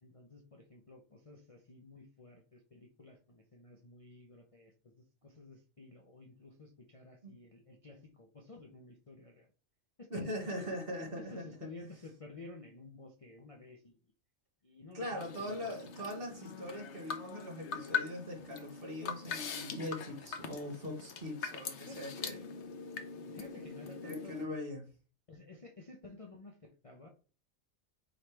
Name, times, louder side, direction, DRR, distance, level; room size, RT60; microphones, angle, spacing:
voice 1, 0.0-9.5 10.0-10.3 10.6-10.7 11.2-14.0 14.6-15.9 19.8-20.2 21.9-22.0 23.3-24.6 25.3-27.1, left 2 dB, 35° left, 0.6 m, -53 dB
voice 2, 10.1-11.7 14.9-22.4 24.0-24.8, left 1 dB, 45° right, 1.9 m, -41 dB
sound 1, 15.2-24.4, left 5 dB, 60° left, 1.0 m, -42 dB
8.9 x 3.2 x 3.4 m
omnidirectional pair, 1.4 m